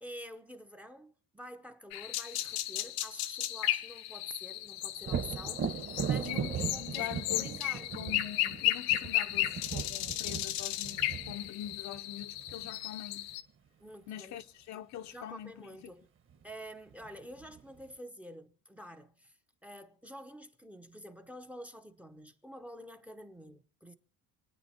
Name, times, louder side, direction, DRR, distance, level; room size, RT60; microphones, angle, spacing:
voice 1, 0.0-7.9 13.8-14.4 15.1-16.1 16.4-23.9, equal, 5° right, 0.7 m, -48 dB
sound 1, 1.9-13.4, left 15 dB, 85° left, 1.0 m, -34 dB
Thunder, 5.0-12.7 16.3-16.4 16.9-17.8, right 7 dB, 35° right, 1.3 m, -38 dB
voice 2, 6.3-13.3 14.1-15.9, left 11 dB, 50° left, 0.7 m, -44 dB
28.5 x 9.6 x 4.2 m
cardioid pair, 150°, 35 cm